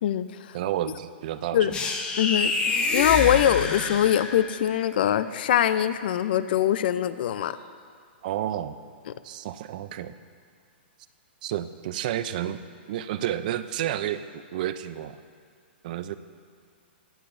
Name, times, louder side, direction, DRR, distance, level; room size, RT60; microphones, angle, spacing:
voice 1, 0.0-0.6 1.5-1.7 2.2-2.5 2.9-7.6, left 10 dB, 55° left, 14 dB, 0.4 m, -23 dB
voice 2, 0.5-1.7 8.2-8.8 9.2-10.1 11.4-12.6 12.9-15.2 15.8-16.2, right 11 dB, 45° right, 13 dB, 0.4 m, -30 dB
sound 1, 1.7-4.6, left 4 dB, 15° left, 0.7 m, -27 dB
20.0 x 8.0 x 2.6 m, 2.2 s
hypercardioid pair, 155°, 6 cm